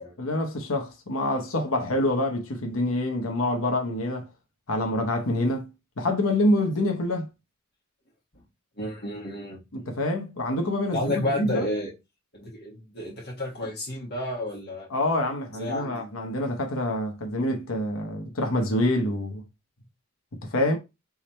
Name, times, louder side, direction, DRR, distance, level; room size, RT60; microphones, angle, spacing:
voice 1, 0.2-4.3 4.7-5.7 6.0-7.3 9.7-11.7 14.9-19.4 20.4-20.8, left 1 dB, 85° left, 1.0 m, -26 dB
voice 2, 8.8-9.6 10.9-11.9 12.3-14.9 15.5-16.0, left 1 dB, 55° left, 1.8 m, -31 dB
3.6 x 3.2 x 4.2 m
head